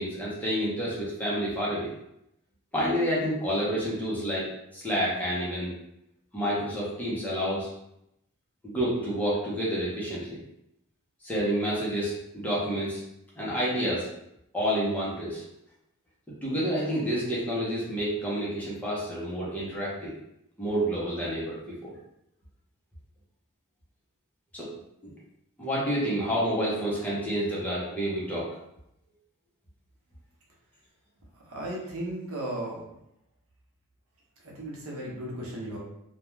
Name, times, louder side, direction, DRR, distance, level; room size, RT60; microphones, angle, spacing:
voice 1, 0.0-1.9 2.7-5.7 6.3-7.7 8.6-10.4 11.2-13.0 13.4-14.1 14.5-15.4 16.4-20.1 20.6-22.0 24.5-24.7 25.0-25.1 25.6-28.6, equal, 5° left, -7 dB, 0.7 m, -29 dB
voice 2, 31.5-32.9 34.4-35.8, right 1 dB, 80° right, -4 dB, 0.8 m, -35 dB
2.4 x 2.2 x 3.0 m, 0.80 s
head